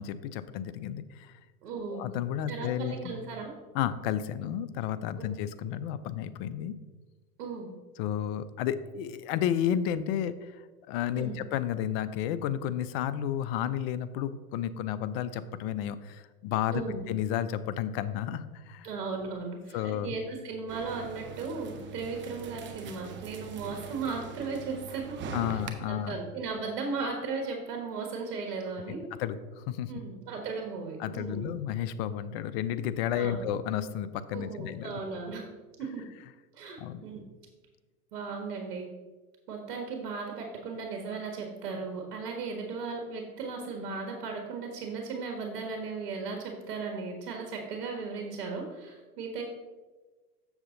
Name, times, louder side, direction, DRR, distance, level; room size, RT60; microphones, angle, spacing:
voice 1, 0.0-1.3 1.9-3.1 3.7-6.7 8.0-10.6 10.9-18.9 19.7-20.1 25.3-26.2 29.2-29.9 31.0-35.0 36.8-37.0, left 10 dB, 45° left, 14 dB, 0.5 m, -32 dB
voice 2, 1.6-2.1 2.5-3.5 5.2-5.3 7.4-7.7 11.1-11.4 16.7-17.0 18.8-25.2 25.5-25.6 25.9-29.0 29.9-31.5 33.1-33.4 34.3-35.4 35.8-36.0 36.5-37.2 38.1-38.9 39.5-49.4, right 4 dB, 70° right, 2 dB, 1.7 m, -36 dB
sound 1, 20.7-25.7, right 5 dB, 25° right, 0.8 m, -42 dB
7.2 x 6.6 x 3.8 m, 1.3 s
hypercardioid pair, 115°, 46 cm